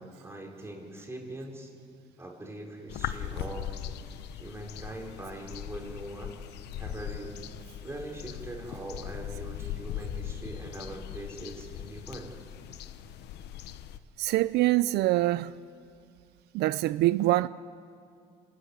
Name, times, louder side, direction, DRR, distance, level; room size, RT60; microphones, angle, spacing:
voice 1, 0.0-1.7 2.2-4.0 4.3-6.3 6.8-7.4 7.8-12.3, right 1 dB, 15° right, 4.5 m, -42 dB
sound 1, 2.9-14.0, left 10 dB, 80° left, 0.9 m, -39 dB
voice 2, 14.2-15.6 16.5-17.5, right 17 dB, 80° right, 0.4 m, -24 dB
26.5 x 13.0 x 9.7 m
cardioid pair, 110°, 17 cm